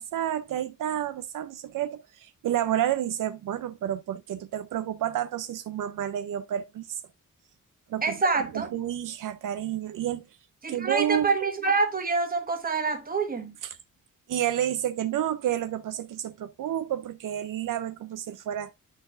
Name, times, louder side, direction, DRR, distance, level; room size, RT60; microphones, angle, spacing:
voice 1, 0.0-7.0 7.9-8.2 8.5-10.2 10.7-11.3 13.6-13.8 14.3-18.7, right 11 dB, 80° right, 0.5 m, -30 dB
voice 2, 8.0-8.7 10.6-13.5, right 4 dB, 30° right, 1.2 m, -26 dB
10.0 x 4.0 x 2.4 m
wide cardioid pair, 135°, 31 cm